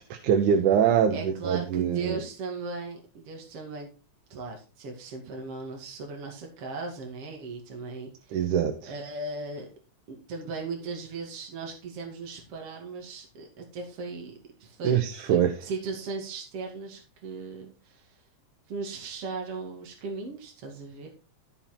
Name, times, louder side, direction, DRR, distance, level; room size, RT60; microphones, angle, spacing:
voice 1, 0.1-2.2 8.3-8.9 14.8-15.5, right 8 dB, 90° right, 6 dB, 2.6 m, -24 dB
voice 2, 1.1-3.9 4.3-8.4 8.9-9.7 10.1-14.3 14.6-15.0 15.3-18.2 18.7-21.1, right 3 dB, 50° right, 1 dB, 3.3 m, -37 dB
15.0 x 5.7 x 4.4 m, 0.32 s
omnidirectional pair, 3.4 m